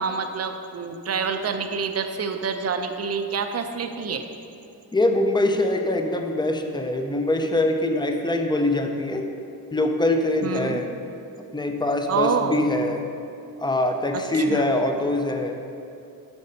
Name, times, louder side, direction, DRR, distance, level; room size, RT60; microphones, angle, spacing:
voice 1, 0.0-4.2 10.4-10.8 12.1-12.6 14.1-14.6, right 5 dB, 40° right, 7 dB, 0.6 m, -27 dB
voice 2, 4.9-9.3 9.7-10.9 11.5-13.1 13.6-15.6, left 1 dB, 10° left, 5 dB, 0.5 m, -23 dB
7.8 x 6.2 x 5.5 m, 2.7 s
wide cardioid pair, 180°, 37 cm